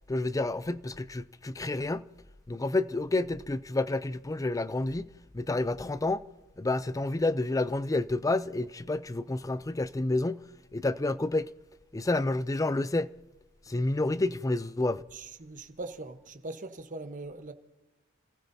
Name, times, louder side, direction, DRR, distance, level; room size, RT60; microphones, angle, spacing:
voice 1, 0.1-2.1 2.5-5.1 5.3-6.2 6.6-10.4 10.7-11.5 11.9-13.1 13.7-15.0, left 2 dB, 15° left, 0.4 m, -29 dB
voice 2, 15.1-17.5, right 2 dB, 40° right, 1.1 m, -41 dB
29.5 x 15.5 x 2.8 m
head